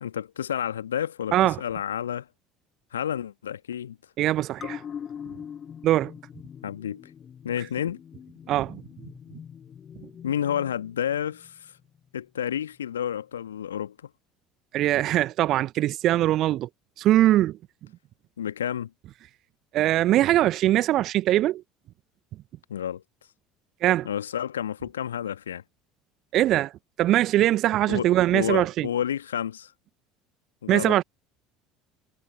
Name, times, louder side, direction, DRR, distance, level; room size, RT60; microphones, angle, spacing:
voice 1, 0.0-2.3 2.9-4.0 6.6-7.0 7.4-8.0 10.2-11.7 12.1-13.9 18.4-18.9 22.7-23.0 24.0-25.6 27.9-29.7 30.6-31.0, left 9 dB, 75° left, 1.6 m, -30 dB
voice 2, 4.2-4.8 5.8-6.1 8.5-8.8 14.7-16.7 17.0-17.6 19.7-21.6 23.8-24.1 26.3-26.7 27.0-28.9 30.7-31.0, right 14 dB, 50° right, 1.3 m, -22 dB
sound 1, 4.6-11.5 11.8-11.9, left 8 dB, 35° left, 7.8 m, -42 dB
figure-of-eight pair, 65°, 0 cm